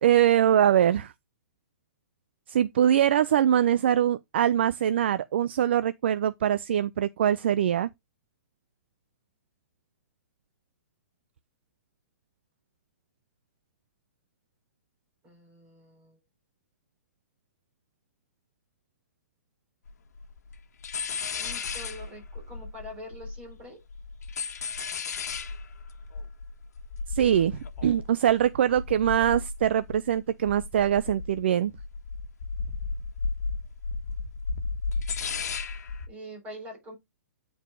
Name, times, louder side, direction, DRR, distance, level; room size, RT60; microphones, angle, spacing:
voice 1, 0.0-1.1 2.5-7.9 27.1-31.7, right 10 dB, 45° right, 0.4 m, -23 dB
voice 2, 15.2-16.2 21.4-23.8 36.1-36.9, equal, 15° right, 4.1 m, -44 dB
sound 1, 19.9-20.0 20.2-20.6 20.8-23.6 23.9-30.2 30.4-31.5 31.8-36.1, left 4 dB, 85° left, 1.4 m, -34 dB
9.1 x 4.7 x 3.8 m
hypercardioid pair, 175°, 9 cm